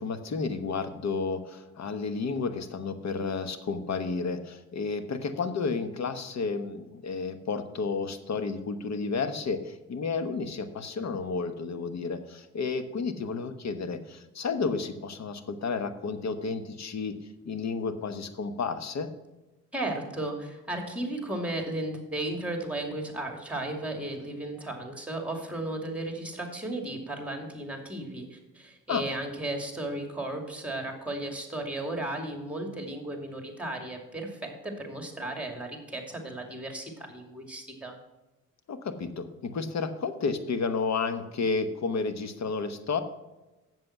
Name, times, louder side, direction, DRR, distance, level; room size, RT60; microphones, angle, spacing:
voice 1, 0.0-17.2 17.4-19.1 28.9-29.0 38.7-43.0, left 4 dB, 55° left, 10 dB, 1.1 m, -31 dB
voice 2, 19.7-37.9, right 1 dB, 5° right, 3 dB, 2.5 m, -35 dB
7.7 x 7.6 x 5.9 m, 1.0 s
cardioid pair, 75°, 32 cm